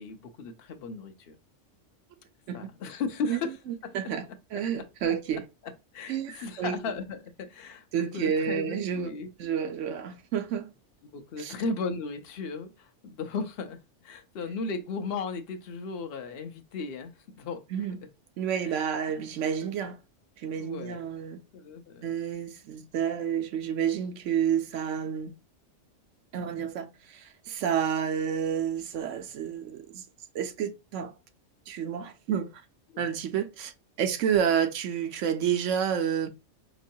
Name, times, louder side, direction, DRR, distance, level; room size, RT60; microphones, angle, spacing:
voice 1, 0.0-1.4 2.5-3.5 3.8-3.9 4.5-4.6 5.9-7.9 8.1-9.3 11.0-17.6 18.6-18.9 20.6-21.0 21.5-22.1 32.9-33.0, left 4 dB, 60° left, 0.9 m, -36 dB
voice 2, 3.7-4.2 4.5-5.4 6.1-6.8 7.9-9.1 9.4-10.7 11.4-11.5 17.7-18.0 18.4-20.0 20.4-21.4 22.0-25.3 26.3-30.0 30.3-31.1 31.7-32.5 33.0-33.7 34.0-36.3, right 8 dB, 80° right, 1.0 m, -29 dB
5.1 x 3.0 x 2.7 m
omnidirectional pair, 1.3 m